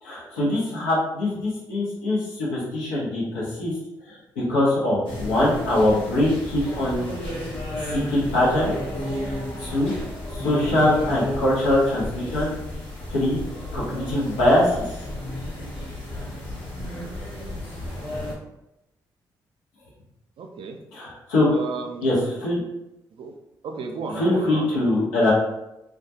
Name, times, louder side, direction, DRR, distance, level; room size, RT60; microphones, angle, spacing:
voice 1, 0.0-3.7 4.1-7.1 7.7-8.7 9.2-9.3 9.6-9.9 10.3-12.5 13.1-13.4 13.7-14.8 20.9-21.5 22.0-22.6 24.1-25.3, left 1 dB, 90° left, -6 dB, 0.8 m, -23 dB
sound 1, 5.0-18.3, left 1 dB, 60° left, 1.0 m, -32 dB
voice 2, 20.4-20.8 21.5-22.1 23.2-23.3 23.6-24.7, right 4 dB, 60° right, 4 dB, 0.4 m, -33 dB
2.3 x 2.1 x 2.7 m, 0.91 s
hypercardioid pair, 40°, 10 cm